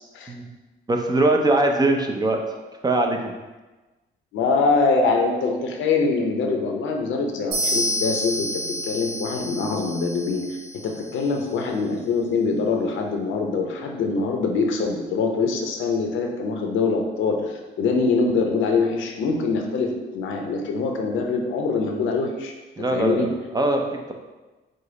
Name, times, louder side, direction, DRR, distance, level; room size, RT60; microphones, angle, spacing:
voice 1, 0.9-2.4 2.8-3.3 22.8-24.1, right 2 dB, 20° right, 3 dB, 0.5 m, -22 dB
voice 2, 4.3-10.6 10.8-23.3, left 4 dB, 80° left, 2 dB, 0.6 m, -24 dB
sound 1, 7.5-11.3, equal, 65° right, 1.1 m, -29 dB
5.0 x 2.0 x 3.8 m, 1.2 s
cardioid pair, 90°, 20 cm